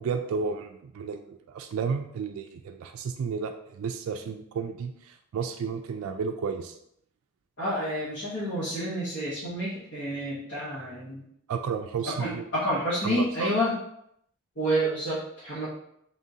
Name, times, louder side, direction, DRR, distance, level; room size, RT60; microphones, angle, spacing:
voice 1, 0.0-6.8 11.5-12.5 13.0-13.5, right 5 dB, 90° right, 5 dB, 0.3 m, -32 dB
voice 2, 7.6-11.2 12.2-13.7 14.6-15.7, equal, 55° left, -11 dB, 1.1 m, -29 dB
3.8 x 3.6 x 2.7 m, 0.74 s
head